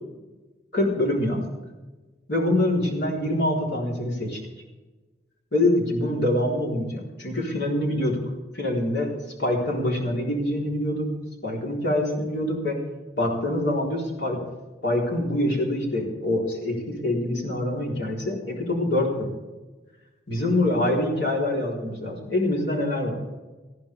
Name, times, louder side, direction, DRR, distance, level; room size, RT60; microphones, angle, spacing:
voice 1, 0.7-1.4 2.3-4.4 5.5-8.2 8.5-9.1 9.4-11.1 11.4-12.8 13.2-14.4 14.8-19.3 20.3-23.2, left 1 dB, 65° left, -3 dB, 4.1 m, -25 dB
19.5 x 14.0 x 3.6 m, 1.2 s
head